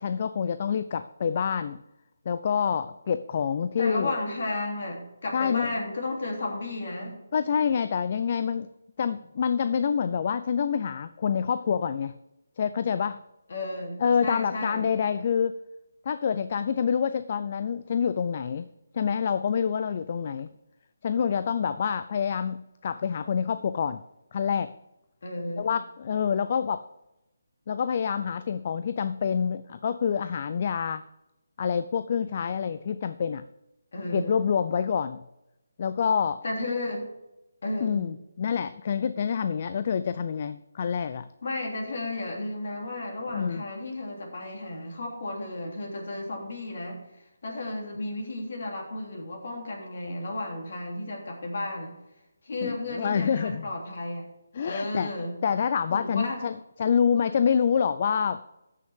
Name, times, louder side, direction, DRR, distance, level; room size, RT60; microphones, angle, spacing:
voice 1, 0.0-1.8 2.3-4.1 5.3-5.7 7.3-8.7 9.0-12.1 12.6-13.2 14.0-15.6 16.1-18.7 18.9-20.5 21.0-24.0 24.3-24.7 25.6-26.8 27.7-31.0 31.6-33.4 34.1-35.2 35.8-36.4 37.8-41.3 43.3-43.6 52.6-53.7 54.5-55.1 55.4-58.4, left 7 dB, 40° left, 12 dB, 0.4 m, -27 dB
voice 2, 3.8-7.2 13.5-14.9 25.2-25.7 33.9-34.4 36.4-37.0 37.6-38.0 41.4-47.0 47.4-51.9 52.4-54.2 54.6-55.4 55.9-56.4, left 2 dB, 60° left, 0 dB, 3.2 m, -33 dB
13.0 x 6.4 x 3.7 m, 0.92 s
figure-of-eight pair, 160°, 0 cm